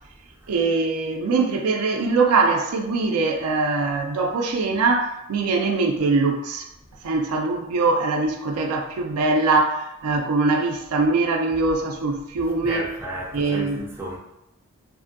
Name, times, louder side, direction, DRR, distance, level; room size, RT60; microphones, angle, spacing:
voice 1, 0.5-6.7 7.0-12.9 13.3-13.8, right 3 dB, 85° right, 0.4 m, -22 dB
voice 2, 12.4-14.2, right 1 dB, 10° right, 0.3 m, -33 dB
2.7 x 2.5 x 2.5 m
head